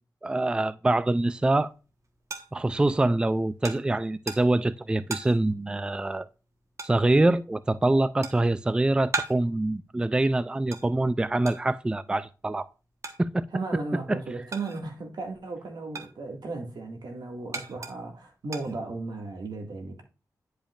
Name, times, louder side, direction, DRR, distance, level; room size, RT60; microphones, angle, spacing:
voice 1, 0.2-1.7 2.5-6.3 6.8-12.7 13.2-13.5 14.1-14.2, right 2 dB, 15° right, 0.3 m, -25 dB
sound 1, 1.3-15.1 15.4-19.3, right 3 dB, 45° right, 1.2 m, -40 dB
voice 2, 13.5-20.0, right 3 dB, 80° right, 1.9 m, -35 dB
10.5 x 5.1 x 2.4 m
wide cardioid pair, 105°, 7 cm